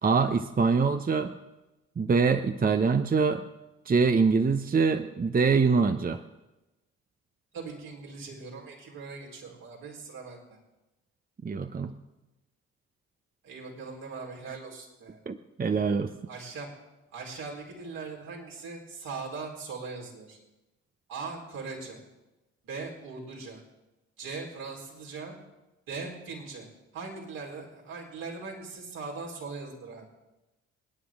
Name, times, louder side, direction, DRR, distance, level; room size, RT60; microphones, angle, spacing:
voice 1, 0.0-1.3 2.0-3.4 3.9-6.2 11.4-11.9 15.3-16.1, right 5 dB, 25° right, 8 dB, 0.8 m, -24 dB
voice 2, 7.5-10.6 13.4-15.2 16.3-16.7 17.1-20.4 21.1-22.0 22.6-23.6 24.2-25.3 25.9-26.7 26.9-30.0, right 4 dB, 65° right, -3 dB, 4.1 m, -40 dB
28.0 x 9.6 x 3.7 m, 1.0 s
hypercardioid pair, 50°, 36 cm